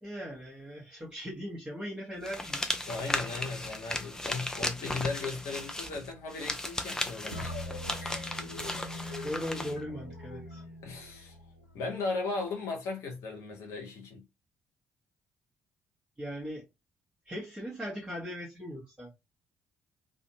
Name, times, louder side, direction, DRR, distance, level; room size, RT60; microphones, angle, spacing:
voice 1, 0.0-2.6 9.2-10.6 16.2-16.7 17.3-19.1, equal, 15° right, 0.9 m, -39 dB
sound 1, 2.2-9.8, left 1 dB, 10° left, 0.5 m, -36 dB
voice 2, 2.8-7.6 7.9-8.4 10.8-11.4 11.7-14.3, left 3 dB, 55° left, 0.7 m, -37 dB
sound 2, 7.3-12.0, left 2 dB, 90° left, 0.4 m, -42 dB
2.5 x 2.1 x 2.7 m
figure-of-eight pair, 45°, 6 cm